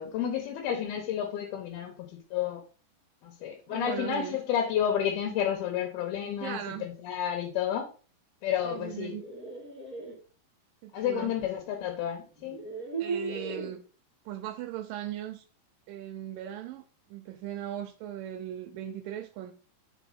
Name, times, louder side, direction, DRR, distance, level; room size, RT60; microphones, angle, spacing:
voice 1, 0.0-2.6 3.2-7.9 8.4-9.2 10.9-12.6, left 9 dB, 90° left, 2 dB, 2.9 m, -31 dB
voice 2, 3.7-4.4 6.4-6.9 8.6-9.2 10.8-11.3 13.0-13.8 14.3-15.4 15.9-16.8 17.1-19.5, right 11 dB, 80° right, 7 dB, 2.1 m, -38 dB
sound 1, 8.8-10.1 11.6-11.7 12.4-13.8, right 4 dB, 10° right, 0.4 m, -37 dB
5.2 x 4.5 x 4.9 m, 0.37 s
omnidirectional pair, 4.3 m